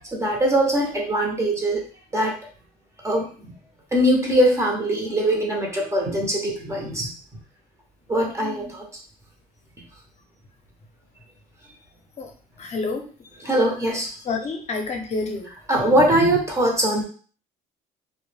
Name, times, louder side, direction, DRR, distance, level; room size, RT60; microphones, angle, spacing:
voice 1, 0.0-1.8 2.1-2.4 3.0-3.3 3.9-7.1 8.1-8.9 13.4-14.1 15.7-17.0, right 1 dB, 15° right, -1 dB, 0.6 m, -21 dB
voice 2, 8.4-8.7 12.2-12.3 12.6-13.0 14.3-15.5, left 3 dB, 40° left, 3 dB, 0.6 m, -29 dB
2.1 x 2.1 x 3.2 m, 0.40 s
cardioid pair, 110°, 17 cm